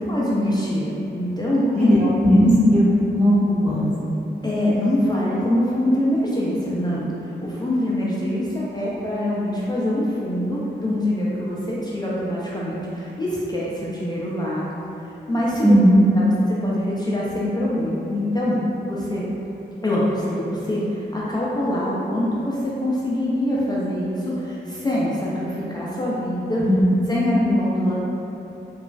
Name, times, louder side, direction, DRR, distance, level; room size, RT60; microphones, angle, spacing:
voice 1, 0.0-2.0 4.4-7.1 7.4-14.7 15.3-15.8 16.1-16.3 16.6-18.6 18.8-19.3 19.8-26.6 27.1-27.9, left 1 dB, 25° left, -7 dB, 0.3 m, -24 dB
voice 2, 1.7-2.8 3.1-3.8 15.6-16.0 26.6-26.8, equal, 40° right, -11 dB, 1.0 m, -16 dB
2.9 x 2.3 x 2.4 m, 2.9 s
wide cardioid pair, 90°, 18 cm